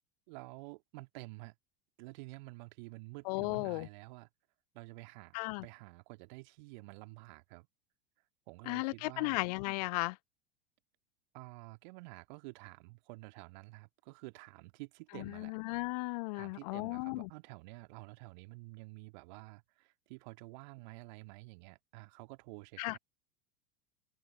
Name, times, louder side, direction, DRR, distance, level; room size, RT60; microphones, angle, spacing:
voice 1, 0.3-1.5 2.0-4.3 4.7-7.7 8.5-9.4 11.3-15.6 16.0-23.0, right 26 dB, 50° right, 2.2 m, -50 dB
voice 2, 3.3-3.9 5.3-5.6 8.7-10.2 15.4-17.3 22.8-23.0, left 25 dB, 45° left, 0.5 m, -35 dB
open air
figure-of-eight pair, 80°, 29 cm